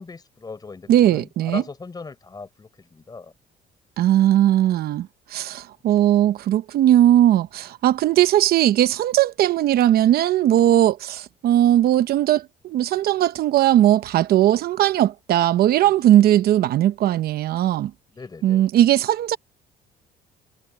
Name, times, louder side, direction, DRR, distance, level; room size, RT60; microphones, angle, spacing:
voice 1, 0.0-3.3 15.8-15.9 18.1-18.7, left 4 dB, 25° left, 5.5 m, -38 dB
voice 2, 0.9-1.6 4.0-17.9 18.4-19.4, right 12 dB, 65° right, 0.9 m, -18 dB
cardioid pair, 110°, 17 cm